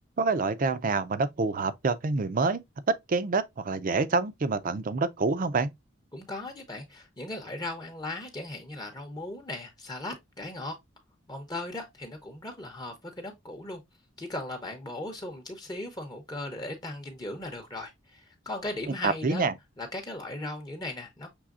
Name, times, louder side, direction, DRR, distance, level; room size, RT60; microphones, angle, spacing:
voice 1, 0.2-2.6 3.1-5.7 19.0-19.5, right 4 dB, 45° right, 0.5 m, -27 dB
voice 2, 6.1-10.8 11.3-13.8 14.2-19.5 19.8-21.3, left 2 dB, 20° left, 0.7 m, -38 dB
6.2 x 3.3 x 2.4 m
head